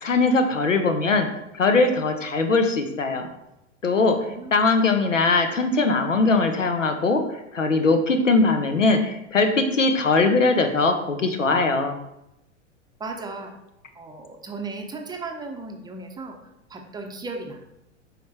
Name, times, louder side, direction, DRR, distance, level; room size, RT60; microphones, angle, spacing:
voice 1, 0.0-1.3 1.5-3.3 3.8-4.2 4.5-7.2 7.5-12.0, left 3 dB, 85° left, 6 dB, 1.0 m, -20 dB
voice 2, 4.1-4.5 13.0-13.5 13.9-16.4 16.7-17.6, right 3 dB, 10° right, 3 dB, 0.7 m, -36 dB
7.9 x 5.0 x 3.3 m, 0.87 s
figure-of-eight pair, 95°, 37 cm